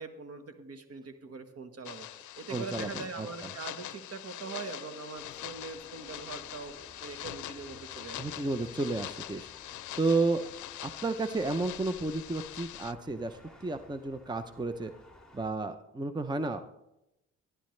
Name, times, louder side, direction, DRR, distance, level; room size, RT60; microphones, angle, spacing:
voice 1, 0.0-6.7 7.0-8.2, right 4 dB, 55° right, 7 dB, 1.5 m, -42 dB
sound 1, 1.9-12.9, left 14 dB, 75° left, 0.5 m, -43 dB
voice 2, 2.5-3.5 8.2-9.5 10.0-10.4 10.8-14.9 15.3-16.6, right 3 dB, 15° right, 9 dB, 0.7 m, -32 dB
sound 2, 4.4-12.0, left 4 dB, 35° left, 1.4 m, -57 dB
sound 3, 5.1-15.5, left 2 dB, ahead, 2.2 m, -57 dB
14.5 x 11.0 x 3.3 m, 0.87 s
cardioid pair, 85°, 30 cm